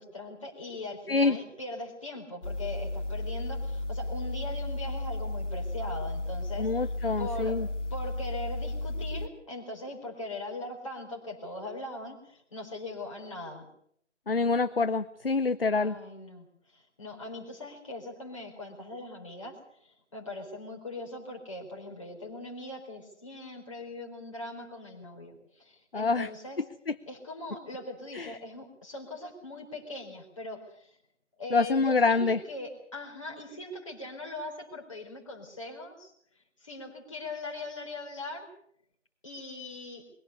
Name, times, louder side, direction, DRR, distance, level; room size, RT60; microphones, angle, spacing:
voice 1, 0.0-7.6 7.9-13.7 15.7-26.6 27.1-31.0 31.4-38.5 39.2-40.0, left 2 dB, 25° left, 0 dB, 4.4 m, -41 dB
sound 1, 2.4-9.3, left 1 dB, 85° left, 2.6 m, -34 dB
voice 2, 6.6-7.7 14.3-16.0 25.9-26.3 28.1-28.3 31.5-32.4, left 4 dB, 50° left, 12 dB, 0.8 m, -26 dB
22.5 x 16.5 x 8.3 m, 0.67 s
figure-of-eight pair, 175°, 36 cm